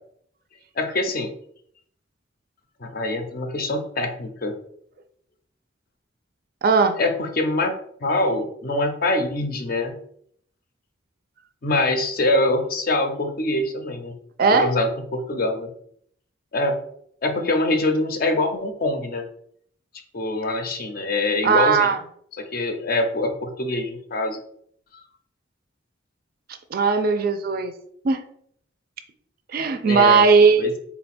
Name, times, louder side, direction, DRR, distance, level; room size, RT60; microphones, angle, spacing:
voice 1, 0.8-1.3 2.8-4.5 7.0-7.7 8.0-10.0 11.6-14.2 14.5-15.7 16.5-16.8 17.2-19.2 20.1-21.9 22.3-24.4 29.9-30.2 30.6-30.8, left 2 dB, 50° left, 6 dB, 0.5 m, -24 dB
voice 2, 6.6-7.0 14.4-14.7 21.4-22.0 26.7-27.7 28.0-28.2 29.5-30.8, right 5 dB, 50° right, 8 dB, 0.4 m, -18 dB
4.0 x 2.2 x 4.1 m, 0.66 s
head